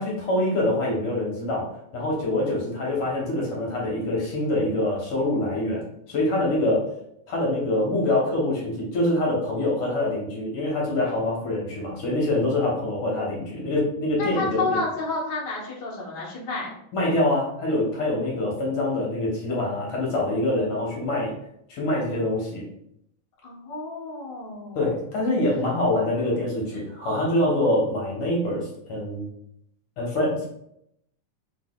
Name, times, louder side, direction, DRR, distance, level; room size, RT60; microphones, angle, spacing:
voice 1, 0.0-1.7 1.9-6.9 7.3-14.8 16.9-21.3 21.7-22.6 24.7-29.3 30.0-30.5, left 1 dB, 60° left, -3 dB, 1.5 m, -25 dB
voice 2, 14.2-16.8 23.4-24.9, left 3 dB, 80° left, -5 dB, 0.9 m, -30 dB
4.7 x 4.0 x 2.3 m, 0.74 s
omnidirectional pair, 3.8 m